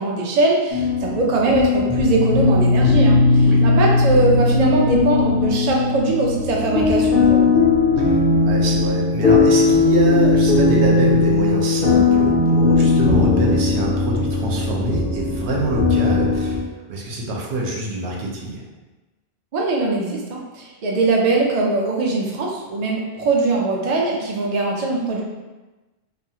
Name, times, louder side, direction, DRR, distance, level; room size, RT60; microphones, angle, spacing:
voice 1, 0.0-7.7 19.5-25.2, right 3 dB, 55° right, -2 dB, 0.4 m, -21 dB
sound 1, 0.7-16.6, left 3 dB, 65° left, 0.7 m, -18 dB
voice 2, 8.4-16.6 16.9-18.6, right 2 dB, 85° right, -2 dB, 0.9 m, -25 dB
2.4 x 2.3 x 2.7 m, 1.2 s
omnidirectional pair, 1.1 m